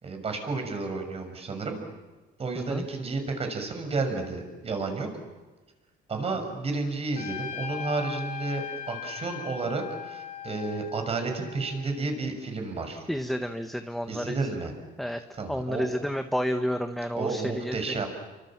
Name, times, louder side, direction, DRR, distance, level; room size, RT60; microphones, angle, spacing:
voice 1, 0.0-1.8 2.4-5.1 6.1-13.1 14.1-14.7 15.4-15.9 17.1-18.1, right 3 dB, 35° right, 5 dB, 6.3 m, -31 dB
Trumpet, 7.2-11.9, left 8 dB, 50° left, 2.9 m, -39 dB
voice 2, 13.1-14.5 15.0-15.2 15.5-17.9, equal, ahead, 7 dB, 1.1 m, -30 dB
29.5 x 25.0 x 7.4 m, 1.2 s
cardioid pair, 110°, 17 cm